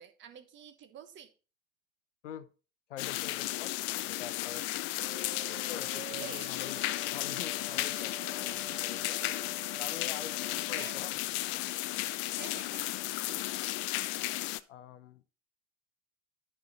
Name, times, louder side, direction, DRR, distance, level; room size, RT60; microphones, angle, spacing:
voice 1, 0.0-1.3 6.1-6.7 10.7-11.0 12.3-12.8, right 9 dB, 30° right, 1.2 m, -48 dB
voice 2, 2.9-4.6 5.5-9.2 9.8-10.3 10.7-11.2 14.7-15.2, left 10 dB, 70° left, 0.9 m, -46 dB
sound 1, 3.0-14.6, left 17 dB, 30° left, 0.4 m, -34 dB
sound 2, 5.0-11.1, right 9 dB, 65° right, 0.9 m, -49 dB
11.0 x 4.8 x 4.1 m
hypercardioid pair, 100°, 38 cm